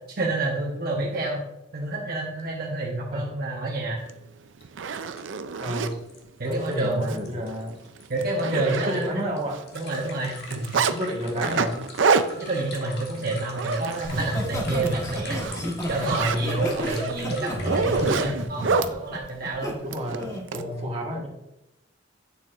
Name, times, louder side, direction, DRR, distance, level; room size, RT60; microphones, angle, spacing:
voice 1, 0.2-1.4 1.7-4.0 6.4-7.3 8.1-9.2 9.7-10.8 12.4-15.4 15.9-19.8 20.5-20.9, right 2 dB, 55° right, -2 dB, 1.1 m, -29 dB
sound 1, 2.4-2.5 2.7-2.8 4.6-4.7 5.2-5.3 5.5-18.2, left 1 dB, 65° left, 1.5 m, -42 dB
Zipper (clothing), 4.1-4.2 4.6-5.9 6.5-6.7 7.0-7.2 7.5-7.6 8.0-9.3 9.5-10.9 11.4-14.3 14.7-14.9 15.3-18.9 19.9-20.6, right 5 dB, 85° right, 0.5 m, -27 dB
voice 2, 5.6-6.0 6.4-7.8 8.4-9.7 10.8-11.8 19.8-21.3, equal, 35° right, -1 dB, 1.5 m, -30 dB
Laughter, 14.0-19.7 20.1-20.5, equal, 20° left, 1.3 m, -30 dB
8.3 x 7.0 x 2.5 m, 0.88 s
head